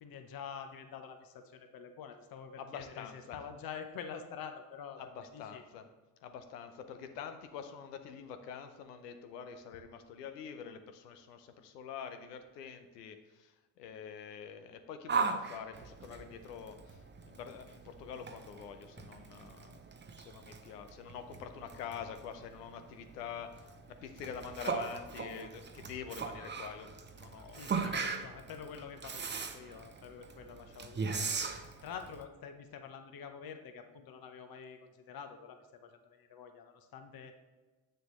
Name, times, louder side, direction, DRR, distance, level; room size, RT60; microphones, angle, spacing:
voice 1, 0.0-5.6 27.5-31.4 31.8-37.3, left 7 dB, 50° left, 7 dB, 0.9 m, -47 dB
voice 2, 2.6-3.4 5.0-5.9 6.2-19.8 20.2-23.5 24.0-27.7, left 7 dB, 90° left, 8 dB, 0.7 m, -46 dB
Yell, 15.1-32.2, right 5 dB, 25° right, 0.7 m, -39 dB
7.7 x 6.7 x 3.1 m, 1.2 s
hypercardioid pair, 55°, 46 cm